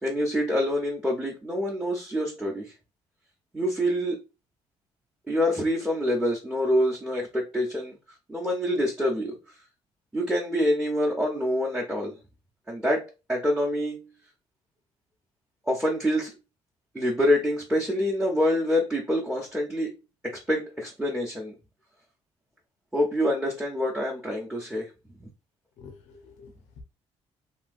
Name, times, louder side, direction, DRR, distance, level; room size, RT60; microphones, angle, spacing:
voice 1, 0.0-2.7 3.5-4.2 5.3-8.0 8.3-9.4 10.1-12.2 12.7-14.0 15.7-16.3 16.9-19.9 20.5-21.6 22.9-24.9 25.2-25.3, equal, 5° right, 0.9 m, -26 dB
voice 2, 25.8-26.8, left 5 dB, 90° left, 0.7 m, -48 dB
2.9 x 2.8 x 2.5 m
cardioid pair, 90°, 11 cm